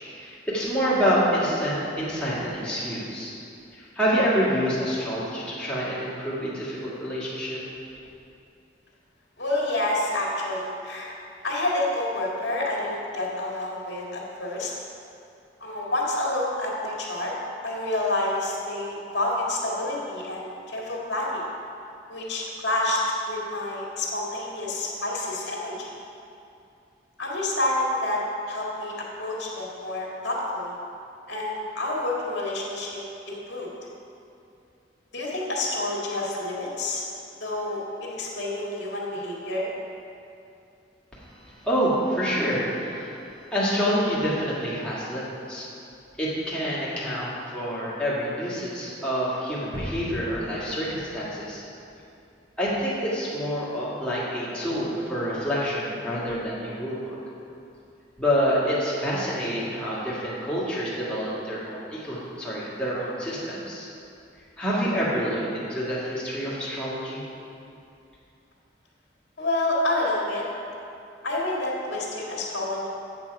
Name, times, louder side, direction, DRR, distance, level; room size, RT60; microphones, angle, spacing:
voice 1, 0.1-3.3 3.7-7.6 41.6-43.2 43.5-45.7 46.2-51.6 52.6-57.2 58.2-63.9 64.6-67.2, equal, 5° left, -9 dB, 2.0 m, -27 dB
voice 2, 9.4-11.1 11.4-14.7 15.6-17.3 17.6-21.4 22.1-23.0 23.3-25.9 27.2-28.2 28.5-30.7 31.3-33.7 35.1-37.0 37.4-39.7 69.4-70.4 71.2-72.9, left 1 dB, 75° left, -3 dB, 1.9 m, -28 dB
sound 1, 49.7-51.8, equal, 60° right, 2.1 m, -38 dB
8.2 x 7.4 x 4.7 m, 2.6 s
head